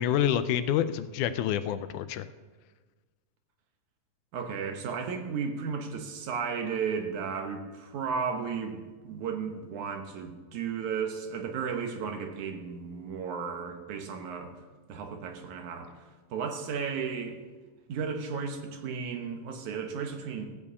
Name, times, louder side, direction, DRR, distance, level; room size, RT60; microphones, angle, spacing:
voice 1, 0.0-2.3, left 10 dB, 80° left, 12 dB, 2.0 m, -27 dB
voice 2, 4.3-14.5 14.9-17.4 17.9-20.5, right 6 dB, 75° right, 5 dB, 2.4 m, -34 dB
15.0 x 5.3 x 8.2 m, 1.3 s
omnidirectional pair, 3.6 m